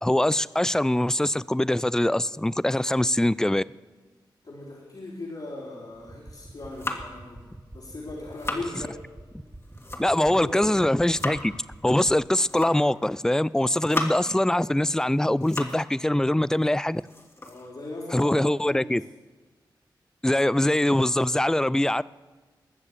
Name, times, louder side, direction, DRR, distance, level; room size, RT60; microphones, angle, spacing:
voice 1, 0.0-3.6 10.0-11.6 11.8-17.0 18.1-19.0 20.2-22.0, left 1 dB, 5° left, 0.4 m, -23 dB
voice 2, 4.4-9.0 10.1-10.8 17.4-19.0, left 2 dB, 60° left, 4.0 m, -39 dB
sound 1, 5.9-12.3, right 1 dB, 15° right, 2.4 m, -47 dB
sound 2, 6.4-7.3 8.0-8.7 9.5-10.3 10.8-11.5 12.3-13.0 13.5-14.4 14.9-15.9 16.2-16.3 16.8-18.5, left 1 dB, 30° left, 2.3 m, -36 dB
20.0 x 7.3 x 6.7 m
cardioid pair, 50°, 8 cm